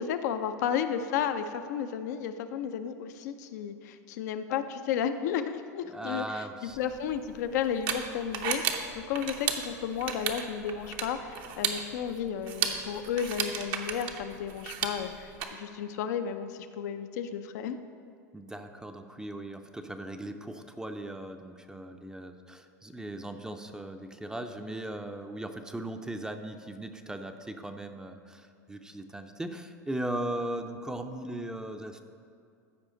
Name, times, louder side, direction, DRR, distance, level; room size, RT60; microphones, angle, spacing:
voice 1, 0.0-17.8, left 8 dB, 70° left, 9 dB, 0.6 m, -33 dB
voice 2, 5.9-6.8 18.3-32.0, right 1 dB, 5° right, 6 dB, 0.5 m, -38 dB
sound 1, 6.7-15.4, right 7 dB, 55° right, 0.8 m, -34 dB
14.0 x 4.9 x 3.9 m, 2.4 s
hypercardioid pair, 95°, 9 cm